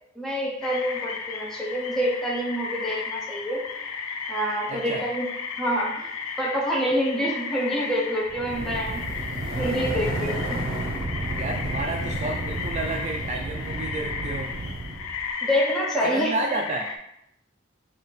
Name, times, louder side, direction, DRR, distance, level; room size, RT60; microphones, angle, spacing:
voice 1, 0.2-3.7 4.3-6.1 6.4-9.0 9.6-10.7 15.4-16.3, equal, ahead, -3 dB, 0.8 m, -27 dB
sound 1, 0.6-17.0, left 5 dB, 85° left, 0.4 m, -34 dB
voice 2, 4.7-5.1 11.3-14.6 16.0-16.9, right 2 dB, 35° right, 1 dB, 0.3 m, -31 dB
sound 2, 8.3-15.3, right 2 dB, 90° right, 0.7 m, -32 dB
3.5 x 2.7 x 4.2 m, 0.79 s
head